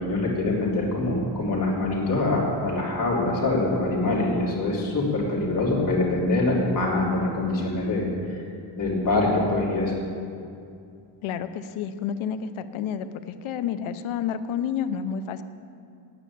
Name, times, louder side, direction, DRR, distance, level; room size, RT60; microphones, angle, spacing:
voice 1, 0.0-8.4 8.8-9.9, left 2 dB, 40° left, -4 dB, 3.1 m, -24 dB
voice 2, 11.2-15.4, left 8 dB, 75° left, 11 dB, 0.8 m, -30 dB
10.0 x 9.0 x 8.4 m, 2.4 s
cardioid pair, 165°, 49 cm